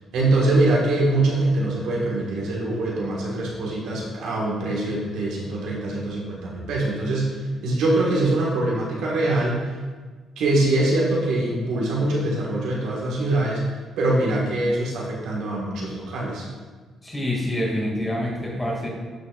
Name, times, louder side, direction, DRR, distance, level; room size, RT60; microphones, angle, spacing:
voice 1, 0.1-9.7 10.4-13.6 14.0-16.5, right 2 dB, 85° right, -4 dB, 1.5 m, -23 dB
voice 2, 17.0-18.9, left 1 dB, 15° left, -3 dB, 2.0 m, -26 dB
11.5 x 4.2 x 2.4 m, 1.4 s
cardioid pair, 90°, 0 cm